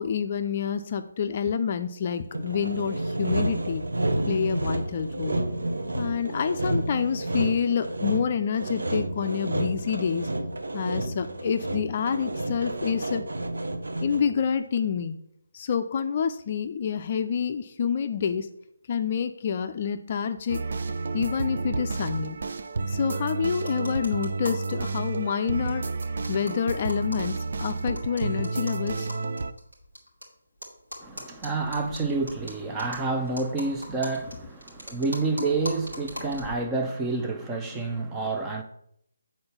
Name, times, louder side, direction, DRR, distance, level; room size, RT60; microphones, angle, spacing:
voice 1, 0.0-3.8 4.3-5.4 5.9-10.3 10.7-13.2 14.0-15.2 15.5-18.5 18.9-20.6 21.1-22.4 22.9-25.8 26.3-29.1, left 7 dB, 40° left, 0.5 m, -28 dB
Sawing, 2.3-14.4, right 1 dB, 75° right, 0.9 m, -30 dB
sound 1, 20.5-29.5, right 3 dB, 55° right, 0.5 m, -31 dB
sound 2, 23.6-24.7 25.0-25.1 25.3-25.4 25.7-30.2 30.6-36.6, equal, 90° right, 2.9 m, -41 dB
voice 2, 31.0-38.6, right 3 dB, 15° right, 0.8 m, -29 dB
7.8 x 4.4 x 5.7 m
figure-of-eight pair, 150°, 0 cm